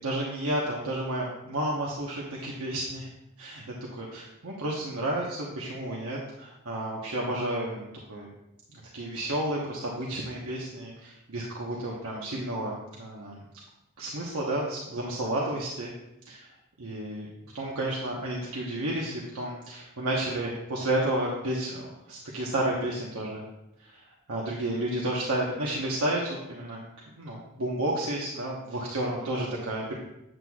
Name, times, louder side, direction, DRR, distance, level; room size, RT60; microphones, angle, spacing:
voice 1, 0.0-3.1 3.4-8.3 8.7-13.4 14.0-15.9 16.3-16.5 16.8-17.3 17.5-23.4 23.8-24.0 24.3-26.8 27.2-29.9, right 1 dB, 90° right, -3 dB, 1.0 m, -31 dB
8.0 x 7.7 x 2.3 m, 0.89 s
head